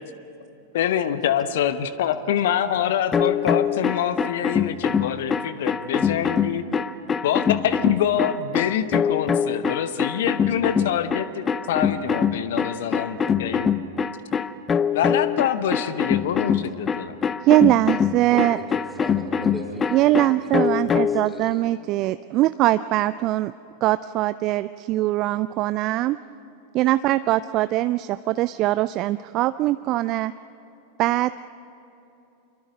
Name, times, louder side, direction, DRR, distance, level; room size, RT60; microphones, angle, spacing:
voice 1, 0.7-6.6 7.2-13.7 14.9-17.1, left 9 dB, 55° left, 12 dB, 1.0 m, -25 dB
sound 1, 3.1-21.3, left 7 dB, 20° left, 0.7 m, -24 dB
voice 2, 17.4-18.6 19.9-23.5 23.8-26.2 26.7-30.3 31.0-31.5, right 16 dB, 40° right, 14 dB, 0.4 m, -22 dB
voice 3, 18.3-20.6 20.8-21.6, equal, ahead, 0 dB, 3.9 m, -38 dB
27.5 x 23.5 x 5.2 m, 3.0 s
figure-of-eight pair, 90°, 0 cm